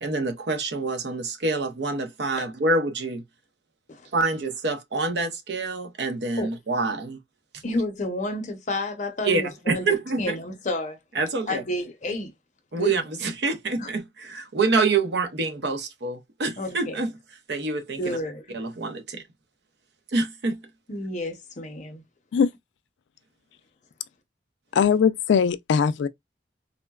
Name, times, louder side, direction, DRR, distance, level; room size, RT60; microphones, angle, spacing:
voice 1, 0.0-3.2 4.1-7.2 9.2-10.3 11.1-11.6 12.7-17.1 17.5-18.2 18.5-19.2 20.1-20.6, right 3 dB, 65° right, 0.7 m, -26 dB
voice 2, 7.6-9.9 10.1-11.0 11.5-12.3 12.7-13.0 13.8-13.9 16.6-17.0 18.0-18.6 20.9-22.0, left 1 dB, 40° left, 0.7 m, -30 dB
voice 3, 24.7-26.1, left 6 dB, 75° left, 0.3 m, -20 dB
3.7 x 2.1 x 2.2 m
head